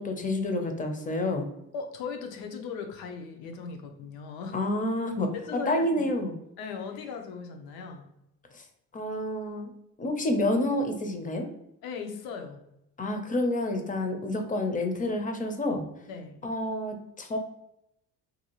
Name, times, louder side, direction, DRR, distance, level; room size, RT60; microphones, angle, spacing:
voice 1, 0.0-1.5 4.5-5.3 5.7-6.3 8.5-8.7 8.9-9.7 10.0-11.5 13.0-15.8 16.4-17.4, left 1 dB, 25° left, 5 dB, 0.4 m, -29 dB
voice 2, 1.7-4.6 5.5-6.1 6.6-8.1 11.8-12.6 16.1-16.4, left 5 dB, 90° left, 4 dB, 0.6 m, -38 dB
2.6 x 2.3 x 2.9 m, 0.83 s
cardioid pair, 90°, 36 cm